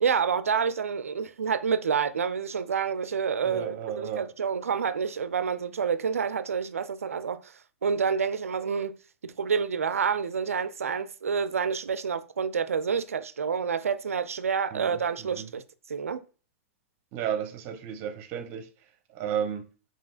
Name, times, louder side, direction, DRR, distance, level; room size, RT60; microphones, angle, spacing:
voice 1, 0.0-7.5 7.8-9.0 9.2-15.6 15.9-16.2, right 6 dB, 75° right, 0.4 m, -28 dB
voice 2, 3.4-4.3 14.7-15.5 17.1-18.7 19.1-19.7, right 9 dB, 35° right, 0.7 m, -33 dB
5.3 x 2.8 x 2.4 m
figure-of-eight pair, 110°, 8 cm